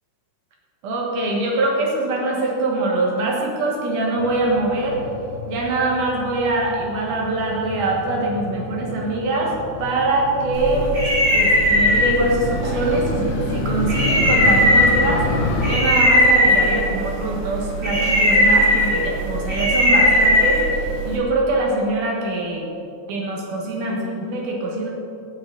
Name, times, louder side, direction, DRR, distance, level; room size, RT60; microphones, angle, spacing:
voice 1, 0.8-5.0 5.5-9.5 9.8-10.9 11.3-15.3 15.7-22.7 23.1-24.9, right 2 dB, 65° right, -2 dB, 2.1 m, -23 dB
Motorcycle, 4.2-15.7, left 4 dB, 75° left, 2.9 m, -29 dB
sound 1, 10.5-21.2, equal, 35° right, 1.1 m, -18 dB
17.5 x 6.7 x 3.8 m, 2.7 s
omnidirectional pair, 5.1 m